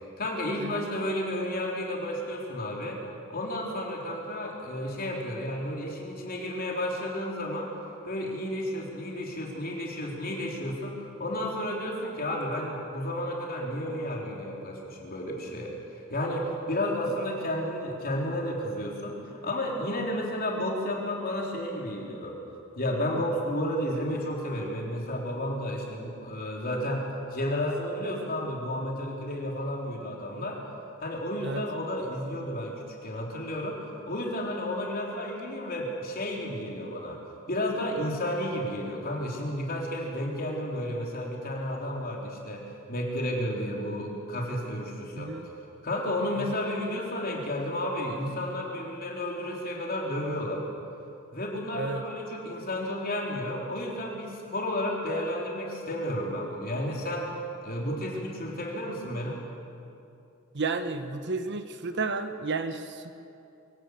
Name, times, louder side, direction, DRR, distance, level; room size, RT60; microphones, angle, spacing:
voice 1, 0.2-3.0 3.3-7.7 8.0-15.7 16.1-22.4 22.8-30.6 31.0-32.8 33.0-37.2 37.5-45.3 45.8-50.6 51.3-57.3 57.6-59.4, left 1 dB, 45° left, -1 dB, 3.9 m, -32 dB
voice 2, 45.2-45.5 51.7-52.0 60.5-63.1, right 3 dB, 55° right, 9 dB, 1.1 m, -32 dB
24.0 x 16.5 x 8.2 m, 2.6 s
head